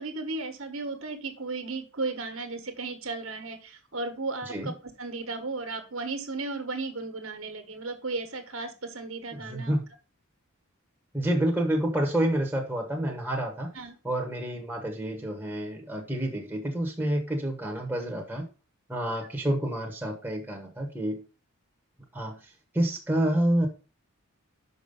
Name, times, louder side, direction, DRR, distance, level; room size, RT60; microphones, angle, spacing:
voice 1, 0.0-9.7 13.7-14.0, right 3 dB, 60° right, 6 dB, 1.4 m, -35 dB
voice 2, 9.4-9.8 11.1-13.7 14.0-18.5 18.9-21.2 22.1-23.7, right 1 dB, 10° right, 0 dB, 1.1 m, -28 dB
6.0 x 5.4 x 5.3 m, 0.33 s
head